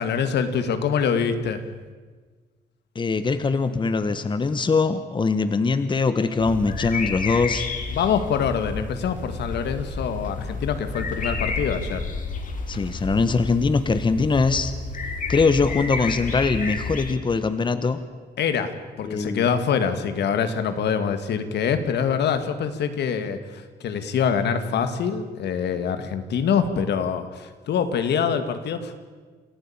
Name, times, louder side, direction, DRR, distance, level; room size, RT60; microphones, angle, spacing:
voice 1, 0.0-1.6 7.9-12.1 18.4-29.0, left 7 dB, 80° left, 9 dB, 2.1 m, -25 dB
voice 2, 2.9-7.7 12.7-14.7 15.3-18.0 19.0-19.5, left 4 dB, 30° left, 11 dB, 1.2 m, -22 dB
sound 1, 6.4-17.1, left 4 dB, 50° left, 3.3 m, -31 dB
28.0 x 14.5 x 8.8 m, 1.4 s
cardioid pair, 125°, 17 cm